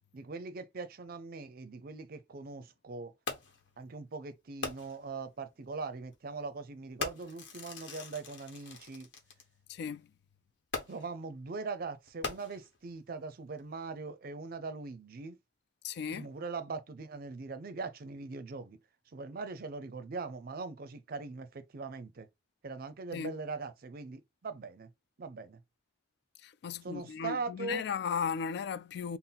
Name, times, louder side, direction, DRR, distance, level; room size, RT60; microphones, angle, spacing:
voice 1, 0.1-3.1 3.8-9.1 10.9-15.4 16.1-18.8 19.1-22.3 22.6-24.9 25.2-25.6 26.8-27.9, right 4 dB, 55° right, 0.5 m, -41 dB
Fireworks, 3.3-3.7 4.6-5.1 6.0-6.2 7.0-9.4 10.7-11.2 12.1-12.9 13.6-13.7, left 4 dB, 80° left, 0.9 m, -41 dB
voice 2, 9.7-10.1 15.8-16.3 23.1-23.4 26.4-29.2, left 6 dB, 60° left, 0.3 m, -36 dB
3.7 x 2.0 x 3.9 m
head